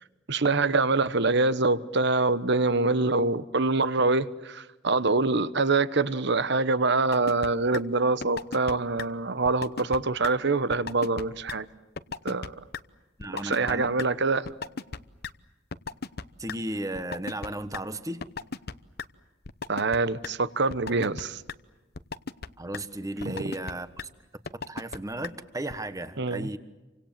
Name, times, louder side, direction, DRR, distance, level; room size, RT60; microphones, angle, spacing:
voice 1, 0.3-11.7 12.2-12.5 13.3-14.5 19.7-21.4 23.2-23.5 26.2-26.5, right 3 dB, 55° right, 14 dB, 1.1 m, -25 dB
sound 1, 7.1-7.5 7.7-7.8 8.2-8.7 9.0-9.1 9.4-10.0 10.2-10.3 10.7-11.2 11.5-11.6 12.0-12.5 12.7-12.8 13.2-13.7 14.0-14.1 14.4-15.0 15.2-15.3 15.7-16.5 16.9-17.8 18.2-18.7 19.0-19.1 19.4-20.0 20.2-20.3 20.7-21.2 21.5-21.6 21.9-22.5 22.7-22.8 23.2-23.7 24.0-24.1 24.5-25.0 25.2-25.3 25.7-25.8, left 4 dB, 50° left, 0.9 m, -35 dB
voice 2, 13.2-13.9 16.4-18.2 22.6-24.1 24.7-26.6, right 1 dB, 15° right, 11 dB, 1.4 m, -35 dB
29.5 x 25.5 x 7.5 m, 1.1 s
head